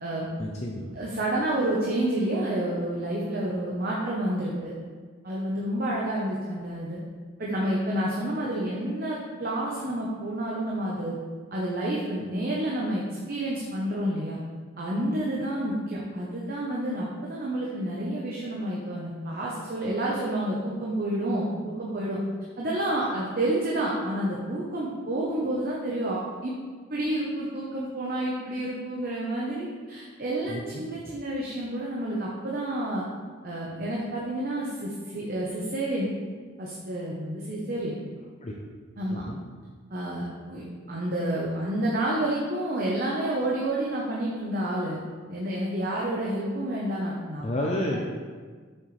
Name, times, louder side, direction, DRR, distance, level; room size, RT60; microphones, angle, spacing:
voice 1, 0.4-0.9 30.5-30.9 38.4-38.5 39.1-39.4 47.4-48.0, left 1 dB, 35° left, -1 dB, 0.6 m, -30 dB
voice 2, 0.9-4.7 5.2-7.0 7.4-11.1 11.5-13.0 13.3-14.4 14.8-22.2 22.6-26.5 26.9-33.0 33.4-36.1 36.6-38.0 39.0-39.2 39.9-45.0 45.3-47.5, right 1 dB, 45° right, -4 dB, 0.9 m, -29 dB
7.9 x 6.3 x 3.3 m, 1.5 s
head